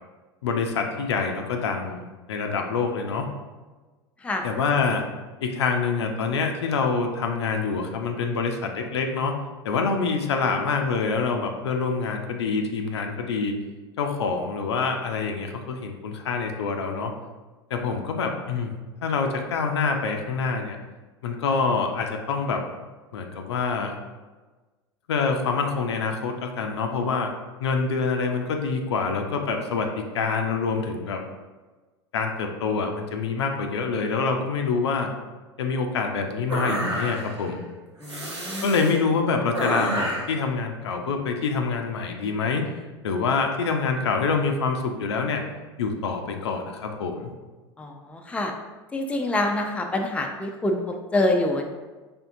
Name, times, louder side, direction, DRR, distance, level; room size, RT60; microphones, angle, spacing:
voice 1, 0.4-3.3 4.4-5.0 5.4-9.3 9.6-13.5 14.0-17.1 17.7-18.7 19.0-20.8 21.2-22.6 23.1-23.9 25.1-27.3 27.6-31.2 32.1-35.1 35.6-37.6 38.6-42.6 43.0-45.4 45.8-47.3, left 4 dB, 75° left, 4 dB, 0.5 m, -26 dB
sound 1, 36.5-37.4 38.0-39.0 39.5-40.4, right 1 dB, 90° right, 0.7 m, -29 dB
voice 2, 38.0-38.7 47.8-48.5 48.9-51.7, left 1 dB, 10° left, 3 dB, 0.4 m, -26 dB
4.3 x 3.4 x 2.6 m, 1.3 s
figure-of-eight pair, 80°, 14 cm